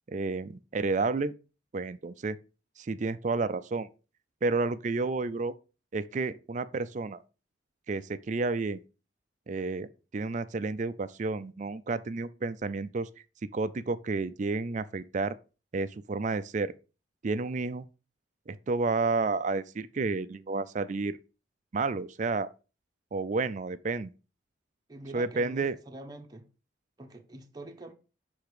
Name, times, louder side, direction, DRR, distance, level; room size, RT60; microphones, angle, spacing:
voice 1, 0.1-1.3 1.7-2.4 2.8-3.9 4.4-5.5 5.9-7.2 7.9-8.8 9.5-9.9 10.1-13.1 13.5-15.3 15.7-16.7 17.2-17.8 18.5-21.2 21.7-22.5 23.1-24.1 25.1-25.7, right 3 dB, 40° right, 0.4 m, -30 dB
voice 2, 24.9-26.5 27.0-27.9, right 2 dB, 20° right, 0.8 m, -45 dB
6.6 x 3.5 x 4.9 m
head